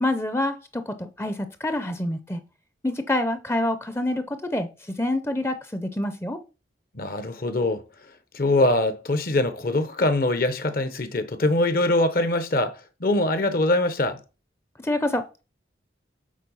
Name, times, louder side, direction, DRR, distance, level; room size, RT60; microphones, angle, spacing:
voice 1, 0.0-2.4 2.8-6.4 14.8-15.4, left 1 dB, 15° left, 0.5 m, -27 dB
voice 2, 6.9-7.8 8.3-14.2, left 2 dB, 50° left, 0.8 m, -23 dB
7.4 x 4.1 x 5.5 m
head